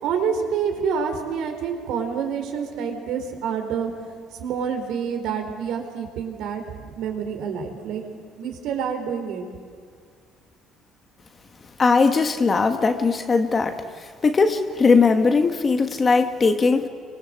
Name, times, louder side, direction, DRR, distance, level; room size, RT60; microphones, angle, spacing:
voice 1, 0.0-3.9 4.4-6.6 7.0-8.0 8.4-9.5, right 6 dB, 65° right, 5 dB, 4.4 m, -27 dB
voice 2, 11.8-13.7 14.2-16.9, left 4 dB, 20° left, 7 dB, 1.2 m, -19 dB
29.0 x 24.5 x 7.9 m, 2.1 s
cardioid pair, 175°, 0 cm